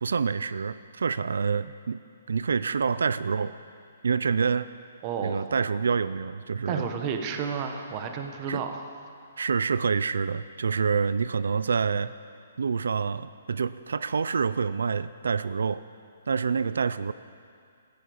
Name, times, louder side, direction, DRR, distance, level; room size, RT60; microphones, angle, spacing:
voice 1, 0.0-2.0 2.3-3.5 4.0-4.7 5.2-6.9 8.5-8.6 9.4-12.1 12.6-15.8 16.3-17.1, right 5 dB, 85° right, 15 dB, 0.4 m, -27 dB
voice 2, 5.0-5.4 6.7-8.8, right 6 dB, 20° right, 5 dB, 1.0 m, -31 dB
15.5 x 9.7 x 8.5 m, 2.3 s
hypercardioid pair, 180°, 0 cm